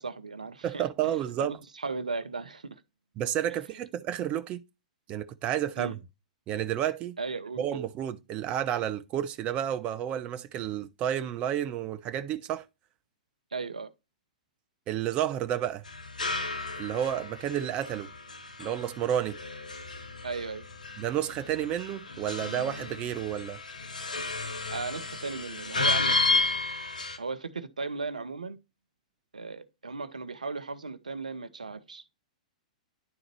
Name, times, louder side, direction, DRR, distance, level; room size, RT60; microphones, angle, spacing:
voice 1, 0.0-0.8 1.4-2.8 3.5-3.6 5.8-6.0 7.2-7.9 13.5-13.9 20.2-20.6 24.7-26.4 27.2-28.6 29.3-32.0, right 4 dB, 80° right, 0.7 m, -36 dB
voice 2, 0.6-1.6 3.2-4.6 5.1-6.0 6.5-7.1 7.6-12.6 14.9-15.8 16.8-18.1 18.6-19.4 21.0-23.6, right 10 dB, 30° right, 0.6 m, -31 dB
sound 1, 15.9-27.2, left 3 dB, 80° left, 1.0 m, -32 dB
10.5 x 3.8 x 3.0 m
figure-of-eight pair, 105°, 4 cm